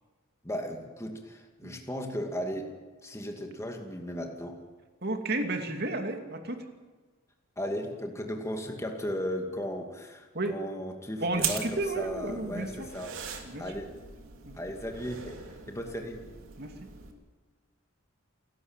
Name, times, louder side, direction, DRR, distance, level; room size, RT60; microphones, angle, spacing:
voice 1, 0.4-2.7 3.0-4.6 7.6-13.1 13.6-13.9 14.5-15.4 15.7-16.2, equal, 15° left, 2 dB, 2.3 m, -36 dB
voice 2, 5.0-6.6 10.3-10.5 11.2-12.9 13.4-13.6 14.4-14.5 16.6-16.7, right 2 dB, 50° right, 5 dB, 2.6 m, -32 dB
sound 1, 11.3-17.1, right 8 dB, 65° right, 2.9 m, -40 dB
29.0 x 12.5 x 9.0 m, 1.4 s
head